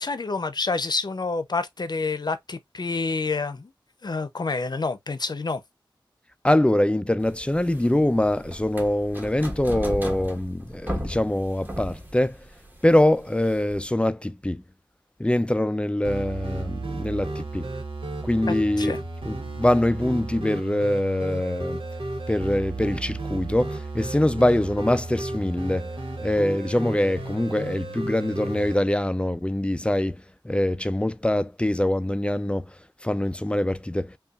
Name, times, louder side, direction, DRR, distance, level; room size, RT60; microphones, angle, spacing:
voice 1, 0.0-3.7 4.0-5.6 18.5-19.0, left 3 dB, 55° left, 0.6 m, -28 dB
voice 2, 6.4-12.4 12.8-14.6 15.2-17.7 18.2-19.0 19.3-21.8 22.3-25.9 26.2-30.2 30.4-32.6 33.0-34.1, left 1 dB, 10° left, 0.3 m, -23 dB
sound 1, 7.2-13.8, equal, 20° right, 1.3 m, -36 dB
sound 2, 16.0-28.7, right 2 dB, 90° right, 1.1 m, -33 dB
5.3 x 2.4 x 2.4 m
wide cardioid pair, 70°, 9 cm